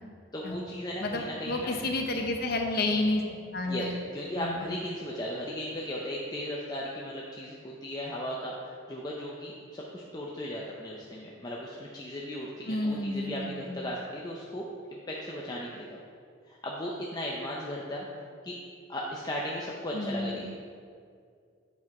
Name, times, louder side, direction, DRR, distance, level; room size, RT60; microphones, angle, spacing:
voice 1, 0.3-1.7 3.7-14.6 14.9-16.0 16.4-18.1 18.4-18.6 18.9-20.5, equal, 20° left, -3 dB, 0.6 m, -36 dB
voice 2, 1.0-3.2 3.5-3.9 4.4-4.7 12.7-13.8 19.9-20.4, left 2 dB, 50° left, 3 dB, 0.8 m, -30 dB
8.3 x 4.6 x 4.8 m, 2.2 s
head